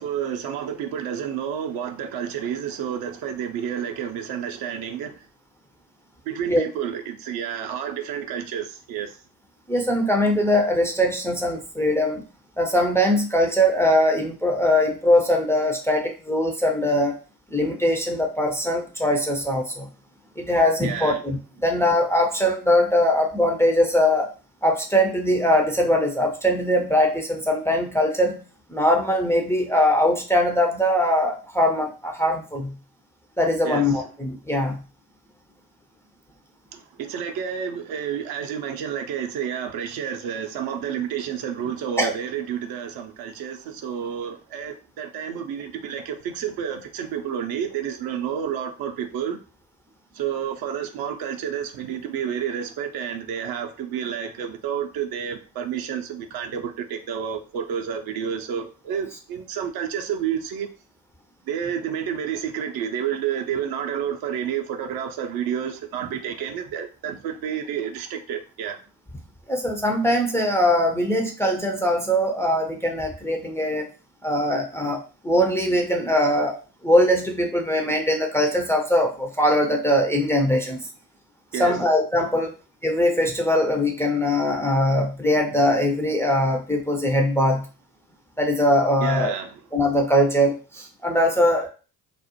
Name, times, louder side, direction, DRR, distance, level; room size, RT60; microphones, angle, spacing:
voice 1, 0.0-5.2 6.3-9.2 20.8-21.2 33.6-34.1 36.7-49.4 50.1-60.7 61.5-68.8 81.5-81.8 89.0-89.5, right 8 dB, 55° right, 0.5 m, -30 dB
voice 2, 9.7-12.2 12.6-17.2 17.5-19.9 20.4-24.3 24.6-28.4 28.7-32.7 33.4-34.8 42.0-42.1 69.5-73.9 74.2-80.9 81.5-82.5 82.8-87.7 88.4-89.3 89.7-91.7, left 1 dB, 5° left, 0.4 m, -21 dB
2.4 x 2.0 x 2.8 m
figure-of-eight pair, 50°, 46 cm